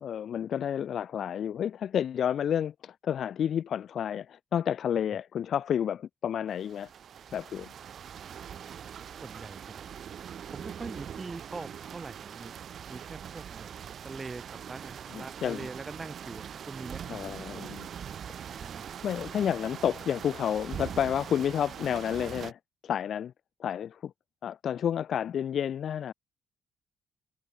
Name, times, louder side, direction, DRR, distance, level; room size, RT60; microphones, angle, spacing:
voice 1, 0.0-6.9 7.3-7.7 15.1-15.7 17.1-17.9 19.0-23.3 23.6-24.1 24.4-26.1, left 9 dB, 60° left, 0.5 m, -30 dB
sound 1, 6.5-22.5, right 8 dB, 60° right, 2.8 m, -42 dB
voice 2, 9.2-9.9 10.5-12.5 12.9-13.7 14.0-17.6 18.5-18.9, right 3 dB, 25° right, 2.2 m, -43 dB
cardioid pair, 90°, 0 cm